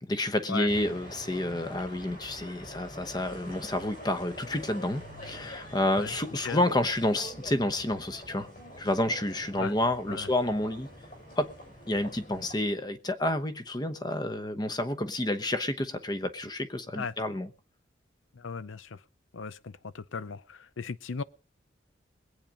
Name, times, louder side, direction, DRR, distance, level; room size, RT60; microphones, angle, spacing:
voice 1, 0.0-8.5 8.8-10.9 11.4-11.5 11.9-17.5, left 1 dB, 20° left, 0.9 m, -29 dB
sound 1, 0.7-12.5, equal, 50° left, 7.6 m, -45 dB
voice 2, 18.3-19.0 19.3-21.2, left 5 dB, 90° left, 0.6 m, -37 dB
21.5 x 8.8 x 5.2 m
head